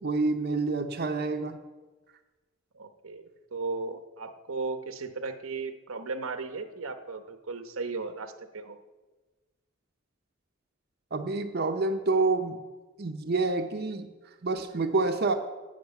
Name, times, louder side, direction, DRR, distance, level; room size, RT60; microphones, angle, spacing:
voice 1, 0.0-1.6 11.1-12.6 13.0-14.1 14.4-15.3, right 3 dB, 50° right, 5 dB, 0.7 m, -27 dB
voice 2, 2.7-8.8, right 3 dB, 90° right, 8 dB, 0.9 m, -36 dB
10.5 x 6.2 x 9.0 m, 1.2 s
head